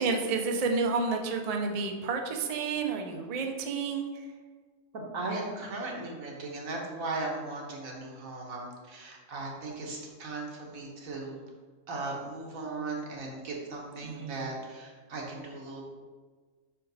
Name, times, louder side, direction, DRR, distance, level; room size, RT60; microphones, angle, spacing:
voice 1, 0.0-4.3 14.0-14.5, right 4 dB, 50° right, 3 dB, 0.4 m, -30 dB
voice 2, 4.9-11.4 11.9-15.8, right 3 dB, 80° right, -1 dB, 1.5 m, -37 dB
5.4 x 4.4 x 4.0 m, 1.5 s
omnidirectional pair, 1.4 m